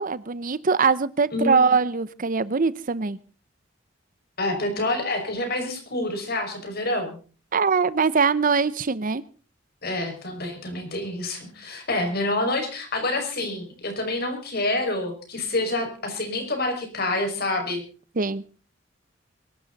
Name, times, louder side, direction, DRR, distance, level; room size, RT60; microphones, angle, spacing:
voice 1, 0.0-3.2 7.5-9.2 18.2-18.4, right 5 dB, 45° right, 18 dB, 0.7 m, -22 dB
voice 2, 1.3-1.8 4.4-7.2 9.8-17.8, left 2 dB, 55° left, 5 dB, 5.9 m, -27 dB
23.0 x 12.5 x 4.1 m, 0.38 s
head